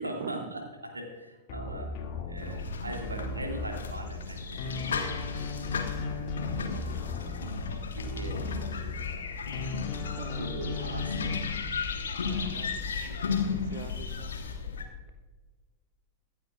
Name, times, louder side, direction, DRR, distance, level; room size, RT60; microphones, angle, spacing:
voice 1, 0.0-2.0 2.3-6.2 7.2-7.6 7.9-9.3 10.4-11.4 12.0-12.1, right 1 dB, 80° right, 2 dB, 2.1 m, -41 dB
sound 1, 1.5-4.3 4.6-9.2 9.5-11.4, left 3 dB, 45° left, 2.2 m, -37 dB
sound 2, 2.4-14.8, left 5 dB, 70° left, 1.4 m, -35 dB
voice 2, 10.2-11.3 12.2-14.4, right 9 dB, 50° right, 8 dB, 0.6 m, -45 dB
24.0 x 8.8 x 2.4 m, 1.3 s
figure-of-eight pair, 90°, 0 cm